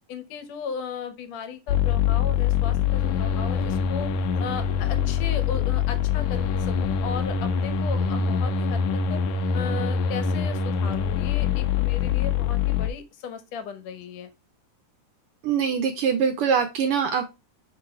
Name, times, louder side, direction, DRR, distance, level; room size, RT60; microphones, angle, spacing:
voice 1, 0.1-4.1 4.4-8.8 9.1-9.2 9.5-14.3, left 6 dB, 65° left, 9 dB, 2.2 m, -36 dB
sound 1, 1.7-12.9, left 7 dB, 90° left, 2.2 m, -24 dB
voice 2, 15.4-17.2, right 7 dB, 80° right, 7 dB, 1.2 m, -23 dB
6.0 x 5.4 x 3.0 m, 0.24 s
omnidirectional pair, 3.4 m